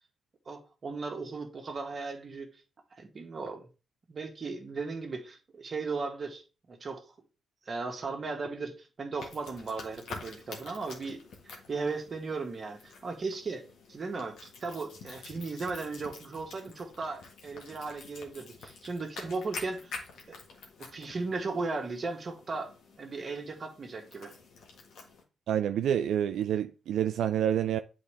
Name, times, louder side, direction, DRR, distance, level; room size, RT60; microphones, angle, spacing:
voice 1, 0.4-2.5 3.0-3.7 4.1-6.4 6.7-7.0 7.7-19.9 20.3-20.4 20.8-22.7 23.0-24.3, right 3 dB, 50° right, 1.7 m, -36 dB
sound 1, 9.2-25.2, left 4 dB, 80° left, 1.6 m, -48 dB
voice 2, 25.5-27.8, right 10 dB, 80° right, 0.3 m, -28 dB
8.4 x 4.3 x 3.3 m
supercardioid pair, 50°, 0 cm